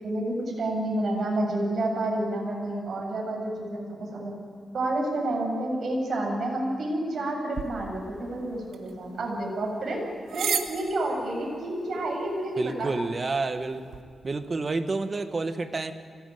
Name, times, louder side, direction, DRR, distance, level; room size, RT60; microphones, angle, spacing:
voice 1, 0.0-4.3 4.7-10.0 10.3-12.9, right 1 dB, 60° right, 0 dB, 7.9 m, -29 dB
sound 1, 7.5-14.0, right 7 dB, 90° right, 1.6 m, -38 dB
voice 2, 12.6-13.9 14.2-15.9, right 3 dB, 40° right, 8 dB, 1.6 m, -29 dB
24.5 x 18.5 x 9.5 m, 2.3 s
cardioid pair, 90°, 0 cm